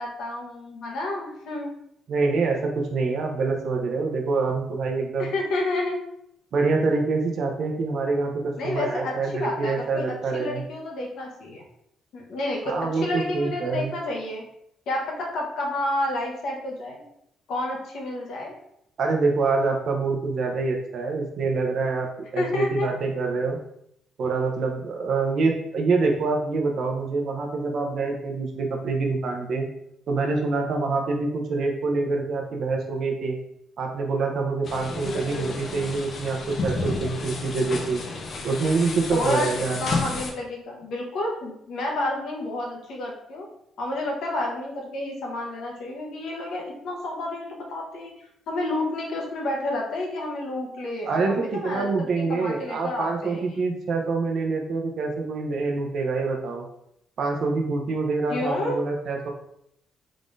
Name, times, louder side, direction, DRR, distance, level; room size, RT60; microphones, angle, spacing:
voice 1, 0.0-1.7 5.2-6.0 8.6-10.1 10.3-11.6 12.1-14.4 14.9-17.0 17.5-18.5 22.4-22.9 39.1-39.5 39.8-43.5 43.8-53.7 58.3-58.8, left 1 dB, 75° left, -1 dB, 1.0 m, -30 dB
voice 2, 2.1-5.3 6.5-10.6 12.7-13.9 19.0-23.6 24.2-29.7 30.1-33.4 33.8-38.0 38.4-39.8 51.1-56.6 57.2-59.3, right 3 dB, 65° right, 2 dB, 0.6 m, -26 dB
sound 1, 34.7-40.3, left 3 dB, 55° left, 0.6 m, -31 dB
3.7 x 3.6 x 2.5 m, 0.75 s
cardioid pair, 90°, 0 cm